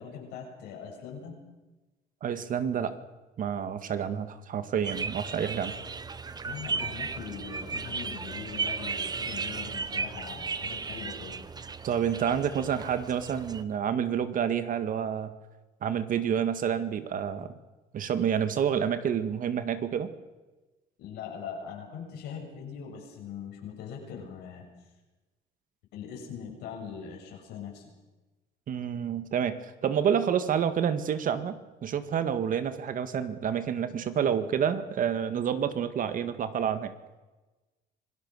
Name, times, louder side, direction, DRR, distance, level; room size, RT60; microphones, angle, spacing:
voice 1, 0.0-1.4 6.4-11.4 21.0-24.7 25.9-27.9, left 7 dB, 85° left, 0 dB, 7.3 m, -41 dB
voice 2, 2.2-3.0 3.4-5.7 11.8-15.3 15.8-17.5 17.9-20.1 28.7-36.9, right 8 dB, 55° right, 11 dB, 1.8 m, -29 dB
sound 1, 4.8-13.6, right 4 dB, 25° right, 1.0 m, -35 dB
26.0 x 18.0 x 6.5 m, 1.2 s
cardioid pair, 110°, 17 cm